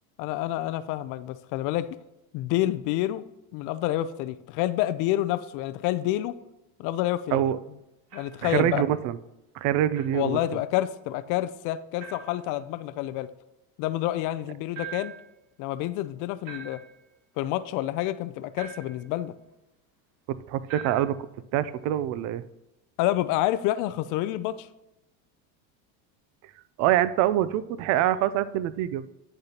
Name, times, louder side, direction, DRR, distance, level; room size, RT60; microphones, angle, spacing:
voice 1, 0.2-1.9 2.3-3.2 3.5-6.4 6.8-7.5 8.1-8.8 10.1-13.3 13.8-15.1 15.6-16.8 17.4-19.3 23.0-24.7, left 14 dB, 50° left, 14 dB, 0.4 m, -28 dB
sound 1, 8.1-8.5 9.9-10.2 12.0-12.4 14.7-15.3 16.4-17.0 18.6-19.1 20.7-21.2, right 7 dB, 65° right, 2.4 m, -42 dB
voice 2, 8.4-9.2 9.5-10.4 20.3-21.2 21.5-22.4 26.8-29.1, right 12 dB, 45° right, 16 dB, 0.4 m, -25 dB
10.0 x 6.6 x 2.9 m, 0.96 s
supercardioid pair, 145°, 43 cm